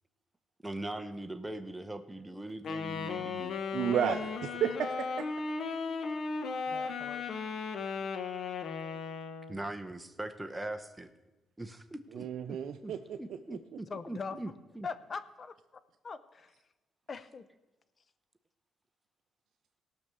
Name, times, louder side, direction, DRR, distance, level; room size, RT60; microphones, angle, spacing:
voice 1, 0.6-3.6 9.5-11.1 11.6-12.6 12.8-12.9 13.2-14.9, right 1 dB, 10° right, 7 dB, 0.9 m, -41 dB
Wind instrument woodwind instrument, 2.6-9.6, left 4 dB, 60° left, 1.1 m, -36 dB
voice 2, 3.7-5.3 12.1-13.6, right 9 dB, 70° right, 5 dB, 0.6 m, -33 dB
voice 3, 6.7-7.2 13.9-14.4 14.8-15.5 16.0-16.5 17.1-17.5, left 5 dB, 40° left, 14 dB, 0.8 m, -41 dB
17.5 x 6.0 x 6.8 m, 1.1 s
cardioid pair, 90°, 0 cm